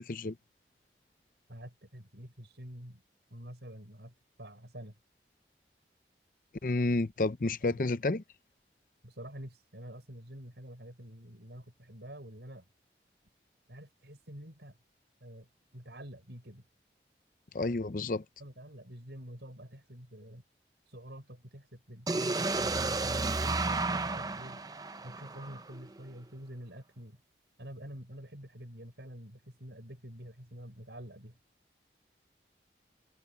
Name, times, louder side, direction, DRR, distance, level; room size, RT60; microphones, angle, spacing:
voice 1, 1.5-3.0 3.3-4.9 7.7-7.8 9.0-12.7 13.7-14.8 15.2-15.5 15.7-16.6 18.4-20.4 20.9-24.6 25.0-27.2 27.6-31.4, equal, 80° right, 6.6 m, -47 dB
voice 2, 6.6-8.2 17.5-18.2, left 2 dB, 50° left, 0.6 m, -30 dB
sound 1, 22.1-26.0, right 3 dB, 20° right, 0.6 m, -32 dB
head